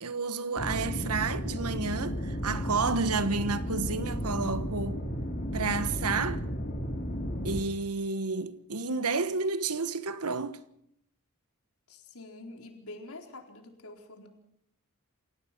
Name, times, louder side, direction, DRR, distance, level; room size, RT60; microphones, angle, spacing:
voice 1, 0.0-5.0 5.5-6.4 7.4-10.6, right 4 dB, 90° right, 1.4 m, -31 dB
sound 1, 0.6-7.6, equal, 40° left, 3.8 m, -33 dB
voice 2, 11.9-14.3, left 2 dB, 75° left, 4.4 m, -46 dB
28.0 x 17.0 x 6.1 m
head